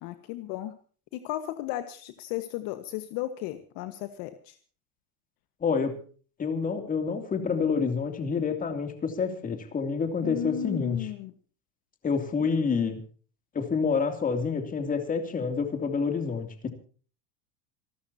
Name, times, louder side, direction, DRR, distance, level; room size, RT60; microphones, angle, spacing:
voice 1, 0.0-0.7 1.1-4.6 10.2-11.3, left 14 dB, 50° left, 9 dB, 1.6 m, -34 dB
voice 2, 5.6-5.9 6.4-11.1 12.0-13.0 13.5-16.7, left 5 dB, 20° left, 6 dB, 2.9 m, -28 dB
27.5 x 13.0 x 2.9 m, 0.42 s
supercardioid pair, 155°, 45 cm